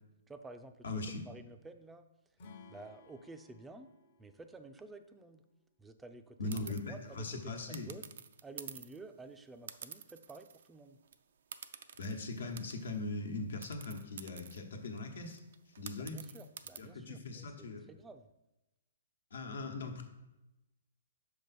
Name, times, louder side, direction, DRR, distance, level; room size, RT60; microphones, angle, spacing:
voice 1, 0.3-2.1 2.7-3.9 4.2-5.4 5.8-6.4 6.9-8.1 8.4-11.0 16.0-18.3, right 3 dB, 10° right, 8 dB, 0.4 m, -52 dB
voice 2, 0.8-1.3 6.4-7.9 12.0-15.4 15.8-16.2 16.8-17.8 19.3-20.0, left 2 dB, 75° left, 3 dB, 1.1 m, -40 dB
Acoustic guitar / Strum, 2.4-5.6, left 4 dB, 55° left, 1.0 m, -59 dB
sound 1, 6.5-6.8 7.7-9.0 9.7-10.7 11.0-11.1 11.5-13.0 13.6-16.8, right 7 dB, 65° right, 0.4 m, -49 dB
6.0 x 5.2 x 4.2 m, 0.96 s
hypercardioid pair, 135°, 0 cm